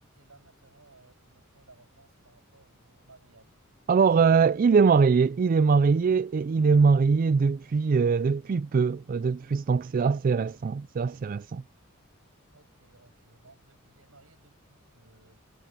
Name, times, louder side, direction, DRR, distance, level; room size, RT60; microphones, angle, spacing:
voice 1, 0.0-3.5 4.0-4.3 12.5-15.4, right 2 dB, 75° right, 7.9 m, -59 dB
voice 2, 3.9-11.6, right 5 dB, 40° right, 0.3 m, -22 dB
head